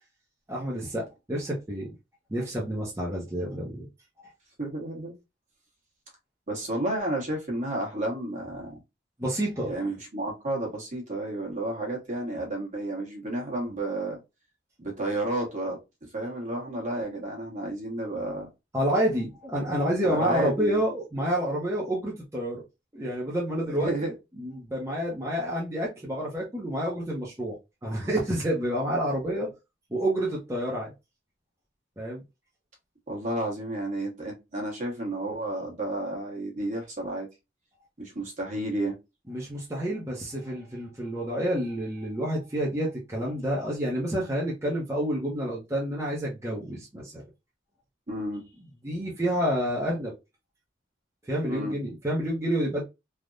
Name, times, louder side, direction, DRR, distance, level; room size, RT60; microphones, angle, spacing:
voice 1, 0.5-1.9 2.3-3.9 4.2-4.3 9.2-9.7 18.7-22.6 22.9-23.9 24.4-27.6 27.8-29.5 29.9-30.9 32.0-32.2 39.3-47.2 48.8-50.1 51.3-52.8, right 1 dB, 15° right, 0.7 m, -29 dB
voice 2, 4.6-5.1 6.5-8.8 9.6-14.2 14.8-15.8 16.1-18.5 20.0-20.8 23.7-24.1 33.1-37.3 38.0-39.0 48.1-48.4 51.5-51.8, right 1 dB, 40° right, 1.2 m, -31 dB
3.4 x 2.1 x 2.5 m
head